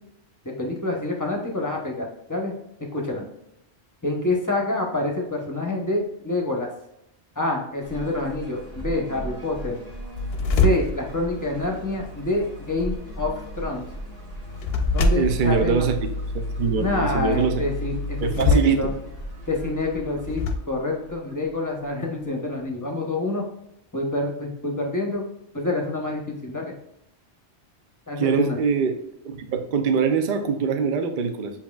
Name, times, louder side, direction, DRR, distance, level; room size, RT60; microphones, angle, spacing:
voice 1, 0.4-2.5 2.9-3.2 4.0-6.7 7.4-9.7 10.6-13.8 14.9-15.9 16.8-18.9 19.5-23.4 23.9-25.2 25.5-26.7 28.1-28.6, left 2 dB, 20° left, 1 dB, 0.8 m, -27 dB
sound 1, 7.8-22.7, right 1 dB, 20° right, 1.2 m, -39 dB
sound 2, 10.1-20.6, left 2 dB, 65° left, 0.8 m, -27 dB
voice 2, 15.1-15.9 16.3-17.6 18.2-18.9 28.2-28.9 29.2-31.5, right 6 dB, 55° right, 6 dB, 0.6 m, -23 dB
7.2 x 2.9 x 2.3 m, 0.81 s
omnidirectional pair, 1.2 m